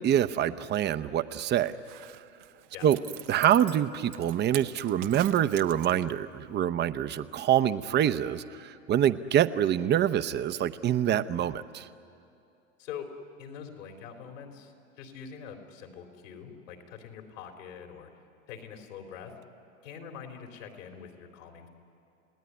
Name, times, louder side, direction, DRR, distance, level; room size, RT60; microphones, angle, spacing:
voice 1, 0.0-1.7 2.0-2.2 2.8-3.0 3.3-11.9, right 10 dB, 25° right, 12 dB, 0.8 m, -26 dB
Zipper (clothing), 1.7-6.3 6.6-6.7, right 14 dB, 65° right, 1.1 m, -44 dB
voice 2, 12.8-13.1 13.4-18.1 18.5-19.3 19.8-21.7, left 7 dB, 75° left, 4 dB, 4.0 m, -44 dB
30.0 x 17.5 x 9.7 m, 2.6 s
hypercardioid pair, 110°, 39 cm